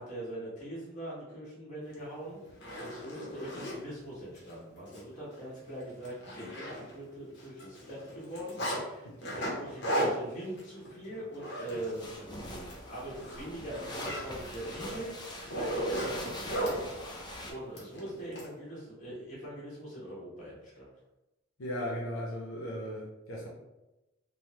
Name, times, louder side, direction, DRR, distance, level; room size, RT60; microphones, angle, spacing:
voice 1, 0.0-2.4 2.7-20.9, right 1 dB, 40° left, -7 dB, 1.3 m, -42 dB
Zipper (clothing), 1.9-2.0 2.5-3.8 4.4-4.5 4.9-5.0 5.3-5.5 5.8-7.1 7.4-8.8 9.2-12.2 12.5-12.8 13.1-16.8 17.7-18.5, right 1 dB, 55° left, 0.9 m, -36 dB
sound 1, 12.0-17.5, left 1 dB, 20° left, 0.4 m, -43 dB
voice 2, 21.6-23.5, equal, 80° left, -3 dB, 0.6 m, -36 dB
3.4 x 2.1 x 2.9 m, 1.0 s
head